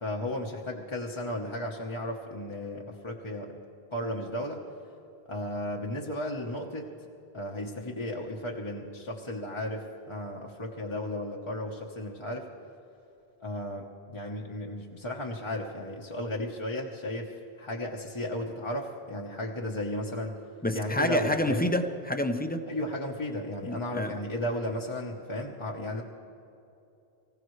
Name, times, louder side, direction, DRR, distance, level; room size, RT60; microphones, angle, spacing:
voice 1, 0.0-3.6 3.9-4.6 5.3-6.9 7.3-12.5 13.4-20.4 20.7-21.7 22.7-26.0, left 1 dB, 30° left, -2 dB, 1.0 m, -34 dB
voice 2, 20.6-22.6 23.6-24.2, left 1 dB, 10° left, 6 dB, 0.7 m, -28 dB
24.5 x 16.0 x 3.2 m, 2.9 s
omnidirectional pair, 1.1 m